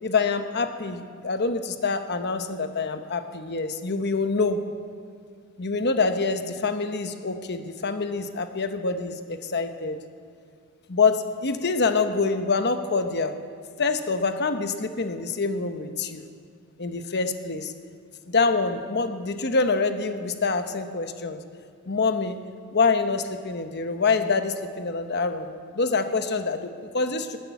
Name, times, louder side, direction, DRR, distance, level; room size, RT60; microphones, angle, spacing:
voice 1, 0.0-4.6 5.6-10.0 10.9-13.4 13.8-16.2 16.8-17.7 18.3-21.4 21.9-22.4 22.7-25.5 25.7-27.4, left 4 dB, 50° left, 8 dB, 1.0 m, -26 dB
13.0 x 10.0 x 9.4 m, 2.1 s
head